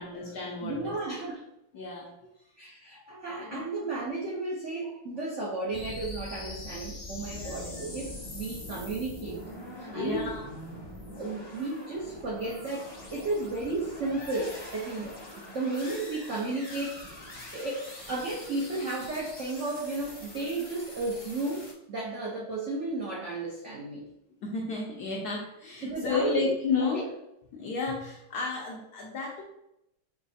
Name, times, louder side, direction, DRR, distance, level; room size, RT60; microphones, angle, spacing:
voice 1, 0.0-1.2 1.7-2.1 2.9-3.7 7.3-7.6 9.9-10.5 24.4-27.1 27.5-29.4, left 4 dB, 70° left, -2 dB, 1.0 m, -33 dB
voice 2, 0.6-1.4 2.6-9.4 9.8-10.3 11.1-17.0 17.5-24.1 25.8-27.0, right 2 dB, 75° right, -4 dB, 0.6 m, -33 dB
sound 1, 5.7-21.7, left 1 dB, 25° left, 0.7 m, -43 dB
6.0 x 3.2 x 2.7 m, 0.84 s
omnidirectional pair, 2.3 m